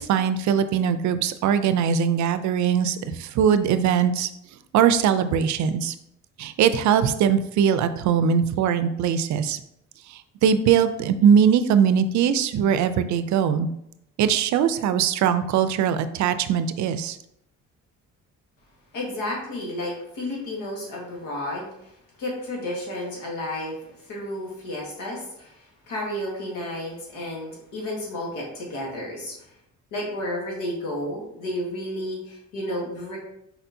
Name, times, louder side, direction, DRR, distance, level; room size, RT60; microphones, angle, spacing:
voice 1, 0.0-4.3 4.7-5.9 6.4-9.6 10.4-13.7 14.2-17.2, right 8 dB, 70° right, 11 dB, 0.5 m, -21 dB
voice 2, 18.9-21.9 22.2-23.8 24.1-29.4 29.9-33.2, left 1 dB, 90° left, -2 dB, 1.7 m, -32 dB
4.2 x 4.2 x 2.7 m, 0.77 s
cardioid pair, 90°, 30 cm